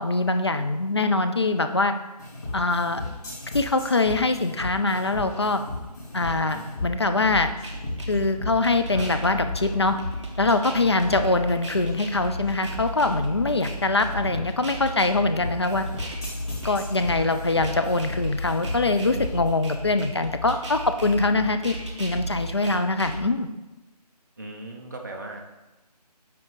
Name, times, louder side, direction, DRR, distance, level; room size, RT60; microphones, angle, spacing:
voice 1, 0.0-1.9 2.5-3.0 3.5-5.6 6.1-7.5 8.1-10.0 10.4-15.9 16.6-21.7 22.0-23.5, left 3 dB, 40° left, 8 dB, 0.4 m, -23 dB
sound 1, 2.2-19.5, left 2 dB, 25° left, 2.0 m, -36 dB
sound 2, 7.2-23.2, equal, 45° right, 1.0 m, -34 dB
voice 2, 24.4-25.4, right 2 dB, 30° right, 2 dB, 0.7 m, -39 dB
9.9 x 3.6 x 4.0 m, 1.1 s
figure-of-eight pair, 160°, 21 cm